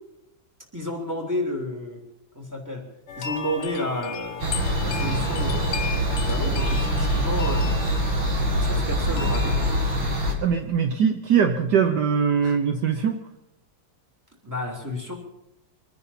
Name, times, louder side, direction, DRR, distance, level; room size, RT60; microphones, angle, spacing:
voice 1, 0.7-2.0 2.3-2.8 3.2-5.8 6.1-7.6 8.5-9.7 12.4-12.6 14.4-15.1, left 1 dB, 10° right, 1 dB, 3.2 m, -31 dB
sound 1, 3.1-10.0, left 7 dB, 60° left, 1.5 m, -35 dB
sound 2, 4.4-10.3, right 1 dB, 80° right, 3.2 m, -24 dB
voice 2, 10.4-13.2, right 7 dB, 65° right, 6 dB, 1.4 m, -21 dB
24.5 x 9.9 x 5.7 m, 0.84 s
omnidirectional pair, 2.1 m